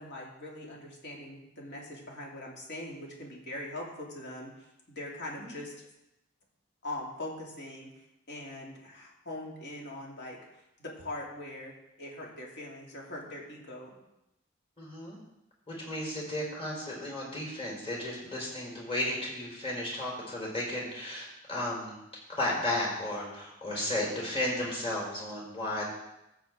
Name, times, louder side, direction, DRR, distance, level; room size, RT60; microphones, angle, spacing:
voice 1, 0.0-4.5 5.0-5.7 6.8-7.9 8.3-10.4 10.8-11.7 12.0-13.9, left 1 dB, 60° left, -2 dB, 2.5 m, -41 dB
voice 2, 14.8-15.2 15.7-22.0 22.3-25.8, left 1 dB, 30° left, -2 dB, 4.3 m, -34 dB
14.5 x 7.8 x 3.7 m, 0.88 s
head